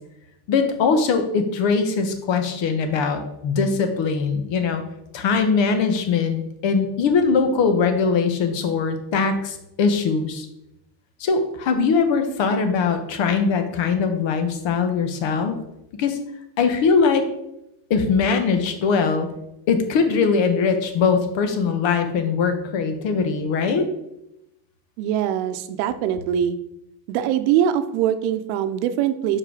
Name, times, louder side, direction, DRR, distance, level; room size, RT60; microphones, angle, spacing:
voice 1, 0.5-4.8 5.1-10.5 11.2-15.5 16.0-16.2 16.6-17.2 17.9-19.3 19.7-23.9, left 5 dB, 65° left, 7 dB, 1.3 m, -21 dB
voice 2, 25.0-26.6 27.1-29.4, right 10 dB, 90° right, 11 dB, 0.7 m, -22 dB
5.5 x 4.7 x 4.8 m, 0.84 s
cardioid pair, 115°, 50 cm